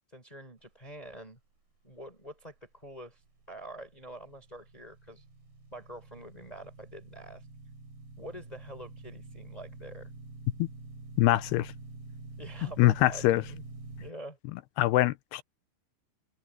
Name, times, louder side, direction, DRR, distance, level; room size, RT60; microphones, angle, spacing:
voice 1, 0.1-1.4 1.8-3.2 3.5-5.2 5.7-7.5 8.2-10.1 12.4-13.6 14.0-14.4, right 1 dB, 10° left, 5.3 m, -46 dB
sound 1, 3.3-14.1, right 3 dB, 65° right, 9.3 m, -47 dB
voice 2, 11.2-11.7 12.8-13.4 14.8-15.4, left 16 dB, 80° left, 2.8 m, -24 dB
omnidirectional pair, 4.8 m